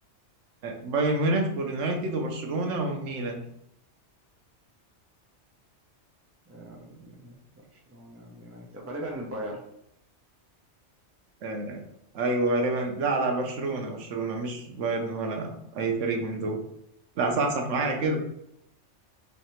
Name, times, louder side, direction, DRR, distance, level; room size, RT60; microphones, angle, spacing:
voice 1, 0.6-3.5 11.4-11.8 12.1-16.6 17.2-18.2, right 2 dB, 90° right, 2 dB, 1.1 m, -28 dB
voice 2, 6.5-7.4 7.9-9.6, right 1 dB, 15° right, -1 dB, 0.5 m, -39 dB
3.3 x 2.8 x 4.3 m, 0.79 s
omnidirectional pair, 1.2 m